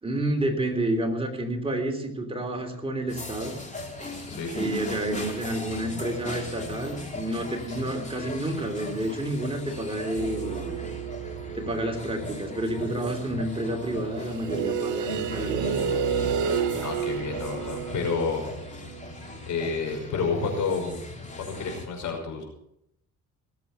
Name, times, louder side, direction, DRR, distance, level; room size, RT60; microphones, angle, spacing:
voice 1, 0.0-3.6 4.5-10.8 11.5-15.9, right 1 dB, 20° right, 2 dB, 3.3 m, -29 dB
sound 1, 3.1-21.9, left 2 dB, 25° left, 3.3 m, -39 dB
sound 2, 10.2-12.5 14.3-19.1, right 7 dB, 80° right, 1.2 m, -30 dB
voice 2, 16.8-18.5 19.4-20.9 21.4-22.4, left 4 dB, 75° left, 3 dB, 5.5 m, -29 dB
19.0 x 8.4 x 6.8 m, 0.77 s
cardioid pair, 90°, 30 cm